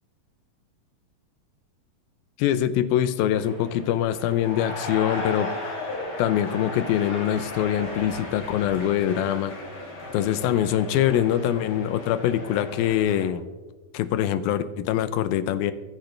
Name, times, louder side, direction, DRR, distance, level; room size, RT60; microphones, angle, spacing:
voice 1, 2.4-5.8 6.2-9.5 10.1-13.4 13.9-15.7, left 11 dB, 85° left, 13 dB, 2.5 m, -24 dB
sound 1, 3.3-13.3, left 2 dB, 45° left, 4.1 m, -36 dB
24.5 x 10.5 x 3.3 m, 1.3 s
omnidirectional pair, 4.2 m